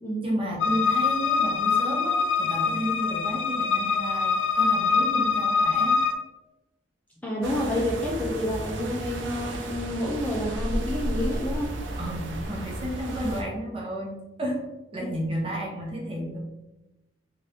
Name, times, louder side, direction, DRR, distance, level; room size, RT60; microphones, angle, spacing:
voice 1, 0.2-6.0 12.0-14.7 14.9-16.4, equal, 30° right, -2 dB, 0.8 m, -32 dB
sound 1, 0.6-6.1, left 5 dB, 80° left, 0.3 m, -24 dB
voice 2, 7.2-11.7, left 1 dB, 10° left, -4 dB, 0.5 m, -29 dB
sound 2, 7.4-13.4, right 1 dB, 85° right, 0.5 m, -33 dB
2.8 x 2.6 x 3.3 m, 1.0 s
head